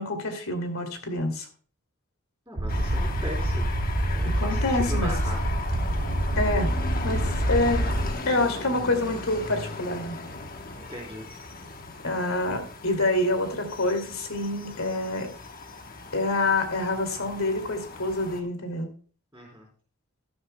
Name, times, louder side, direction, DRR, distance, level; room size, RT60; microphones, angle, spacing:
voice 1, 0.0-1.5 4.2-5.1 6.4-6.7 7.0-7.2 7.5-7.8 8.3-10.2 12.0-15.3 16.1-18.9, left 2 dB, 80° left, 6 dB, 2.5 m, -27 dB
voice 2, 2.5-3.7 4.1-5.5 10.9-11.4 19.3-19.7, equal, 15° right, -4 dB, 3.6 m, -38 dB
sound 1, 2.6-8.1, right 1 dB, 50° right, 0.8 m, -26 dB
sound 2, 2.7-18.4, left 3 dB, 40° left, 1.1 m, -38 dB
13.0 x 12.0 x 2.2 m, 0.42 s
head